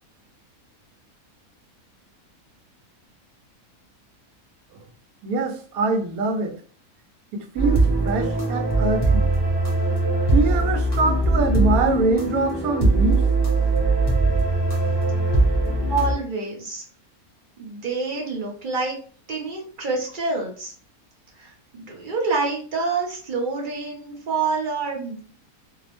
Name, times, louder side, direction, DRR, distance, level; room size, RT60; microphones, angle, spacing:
voice 1, 5.2-6.6 7.3-9.3 10.3-13.3, right 3 dB, 80° right, 1.0 m, -24 dB
sound 1, 7.6-16.1, right 2 dB, 20° left, 0.8 m, -21 dB
voice 2, 15.9-16.8 17.6-19.0 19.3-20.7 21.4-25.2, right 4 dB, 50° right, 0.6 m, -27 dB
2.8 x 2.0 x 2.9 m
omnidirectional pair, 1.5 m